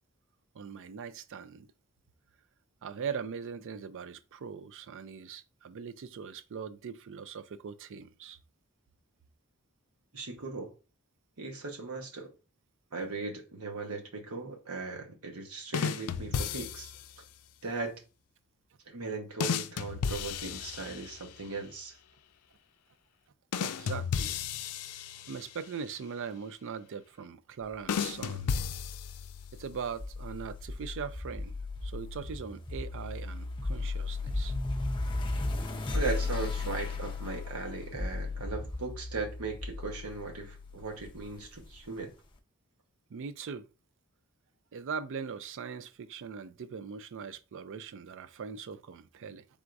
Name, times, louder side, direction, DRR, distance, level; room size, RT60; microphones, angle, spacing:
voice 1, 0.5-1.7 2.8-8.4 23.6-24.5 25.3-28.5 29.5-34.5 43.1-43.7 44.7-49.4, right 6 dB, 60° right, 0.4 m, -41 dB
voice 2, 10.1-10.7 11.4-12.3 12.9-16.9 17.6-18.0 18.9-22.0 35.9-42.1, right 3 dB, 75° right, 1.0 m, -38 dB
sound 1, 15.7-17.1 19.4-21.4 23.5-25.7 27.9-29.5, left 7 dB, 85° left, 0.4 m, -34 dB
sound 2, 28.6-41.8, left 3 dB, 20° left, 0.5 m, -36 dB
4.5 x 3.6 x 2.5 m
head